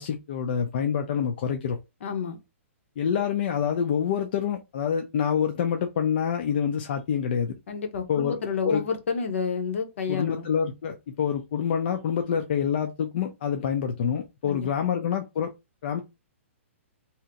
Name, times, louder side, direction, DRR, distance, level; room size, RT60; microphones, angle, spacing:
voice 1, 0.0-1.8 3.0-7.5 8.1-8.4 8.6-8.8 10.1-15.5 15.8-16.0, left 7 dB, 50° left, 0.4 m, -26 dB
voice 2, 2.0-2.4 7.7-10.5 14.4-14.9, left 5 dB, 70° left, 0.9 m, -30 dB
2.8 x 2.1 x 3.6 m
hypercardioid pair, 160°, 7 cm